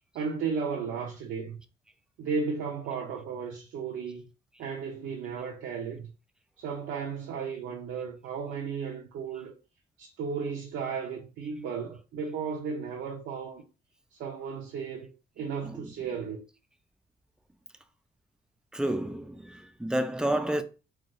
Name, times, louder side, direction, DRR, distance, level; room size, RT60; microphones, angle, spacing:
voice 1, 0.1-1.6 2.2-4.2 4.6-6.1 6.6-9.5 10.0-13.6 14.1-15.1 15.4-16.4, right 5 dB, 75° right, 0.6 m, -34 dB
voice 2, 15.6-16.3 18.7-20.6, right 1 dB, 5° right, 0.3 m, -31 dB
3.3 x 2.2 x 2.5 m
cardioid pair, 90°, 20 cm